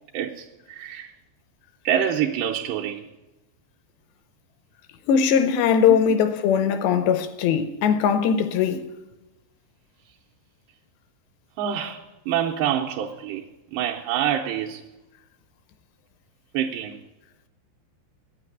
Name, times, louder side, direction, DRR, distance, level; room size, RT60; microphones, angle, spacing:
voice 1, 0.1-1.1 1.8-3.0 5.9-6.0 11.6-13.4 13.7-14.8 16.5-17.0, right 9 dB, 85° right, 2.6 m, -26 dB
voice 2, 5.1-8.8, left 7 dB, 80° left, 2.7 m, -20 dB
9.2 x 8.8 x 9.1 m
omnidirectional pair, 5.2 m